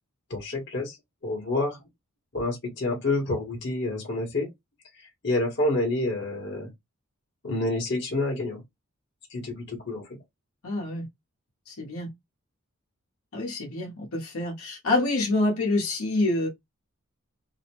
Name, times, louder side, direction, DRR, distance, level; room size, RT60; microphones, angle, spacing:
voice 1, 0.3-1.0 1.2-1.8 2.3-4.5 5.2-6.7 7.4-8.6 9.3-10.0, left 2 dB, 50° left, 1.0 m, -28 dB
voice 2, 10.6-11.1 11.7-12.1 13.3-16.5, left 2 dB, 80° left, 0.9 m, -27 dB
2.6 x 2.0 x 2.8 m
head